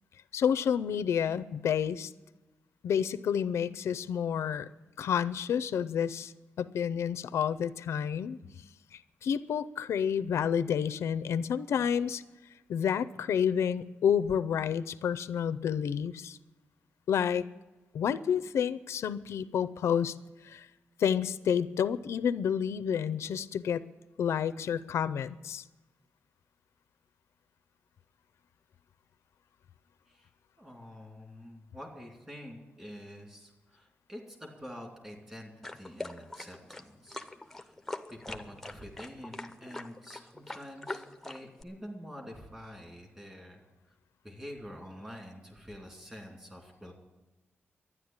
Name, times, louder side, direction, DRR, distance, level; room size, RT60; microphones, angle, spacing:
voice 1, 0.3-2.1 2.8-4.7 5.0-8.4 8.9-12.2 12.7-16.4 17.1-17.5 17.9-20.1 20.4-20.7 21.0-23.8 24.2-25.6, left 8 dB, 85° left, 15 dB, 0.5 m, -29 dB
voice 2, 30.6-37.2 37.5-37.7 38.1-43.6 44.2-46.9, equal, 15° right, 1 dB, 2.7 m, -47 dB
sound 1, 35.6-41.6, left 2 dB, 5° left, 0.7 m, -42 dB
12.5 x 9.8 x 8.8 m, 1.1 s
wide cardioid pair, 180°, 5 cm